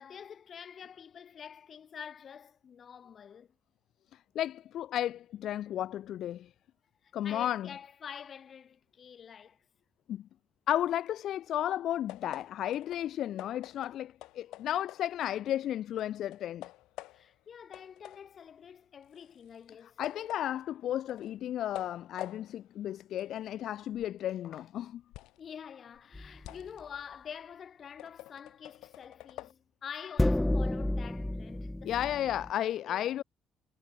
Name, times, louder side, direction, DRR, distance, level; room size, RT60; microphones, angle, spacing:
voice 1, 0.0-3.5 7.0-9.6 17.1-20.0 25.4-33.0, left 7 dB, 50° left, 6.5 m, -47 dB
voice 2, 4.1-6.5 7.1-7.7 10.1-10.3 10.7-16.7 20.0-25.0 31.8-33.2, left 11 dB, 70° left, 2.1 m, -33 dB
sound 1, 12.1-15.7 16.0-17.4 17.7-25.5 25.9-29.5, left 18 dB, 85° left, 6.0 m, -49 dB
sound 2, 26.1-26.5 30.2-32.5, left 1 dB, 10° left, 1.2 m, -30 dB
cardioid pair, 90°, 0 cm